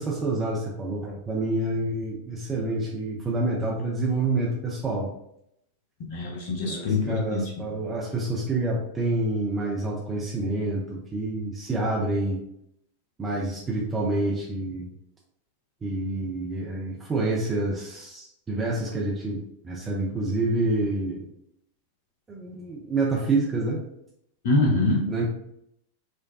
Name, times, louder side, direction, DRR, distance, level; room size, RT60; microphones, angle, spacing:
voice 1, 0.0-5.1 6.6-12.4 13.2-14.9 15.8-21.3 22.3-23.9 25.1-25.3, right 2 dB, 15° right, -3 dB, 0.6 m, -28 dB
voice 2, 6.1-7.7 24.4-25.1, left 2 dB, 50° left, -1 dB, 0.8 m, -24 dB
4.6 x 2.3 x 2.3 m, 0.76 s
figure-of-eight pair, 90°, 0 cm